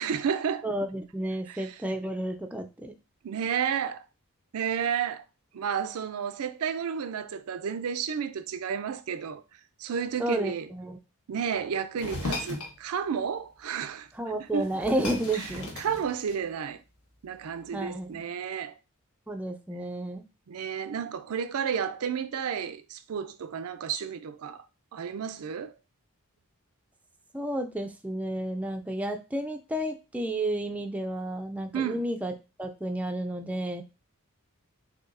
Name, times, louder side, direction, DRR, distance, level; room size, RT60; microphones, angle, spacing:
voice 1, 0.0-0.7 1.5-1.7 3.2-4.0 4.5-5.2 5.5-9.4 9.8-10.7 11.3-14.1 14.5-14.7 15.8-16.8 17.2-18.7 20.5-24.6 24.9-25.7 31.7-32.0, right 7 dB, 75° right, 0.4 m, -31 dB
voice 2, 0.6-2.9 10.2-11.0 14.1-15.7 17.7-18.2 19.3-20.2 27.3-33.8, right 1 dB, 5° right, 0.3 m, -31 dB
sound 1, 12.0-12.8 14.1-14.2 14.5-16.6, left 2 dB, 75° left, 1.1 m, -36 dB
6.6 x 2.7 x 2.5 m
head